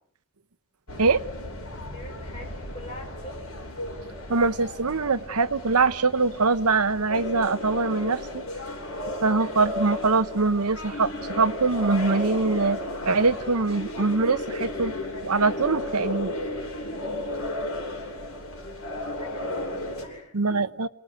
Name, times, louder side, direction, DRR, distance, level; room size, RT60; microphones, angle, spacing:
sound 1, 0.9-20.0, left 1 dB, 70° left, 7.6 m, -34 dB
voice 1, 1.6-3.4 17.0-17.4 18.9-20.4, left 1 dB, 30° left, 1 dB, 6.2 m, -44 dB
voice 2, 4.3-8.4 9.2-12.8 13.0-14.9 15.2-16.4 20.3-20.9, right 4 dB, 85° right, 11 dB, 1.0 m, -23 dB
28.5 x 19.5 x 9.1 m, 0.67 s
head